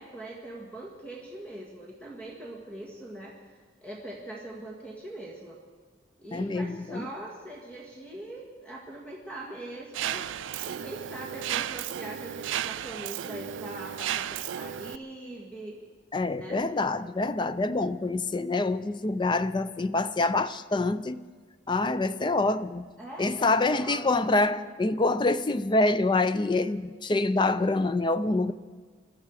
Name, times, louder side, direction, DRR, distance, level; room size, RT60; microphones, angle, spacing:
voice 1, 0.0-3.4 3.8-5.6 6.2-10.3 10.6-15.8 16.3-16.6 23.0-24.7, right 1 dB, 5° left, 1.8 m, -42 dB
voice 2, 6.3-7.1 16.1-21.2 21.7-22.9 23.2-28.5, left 2 dB, 25° left, 0.4 m, -26 dB
Mechanisms, 9.9-15.0, right 10 dB, 75° right, 0.4 m, -34 dB
22.5 x 13.0 x 4.8 m
head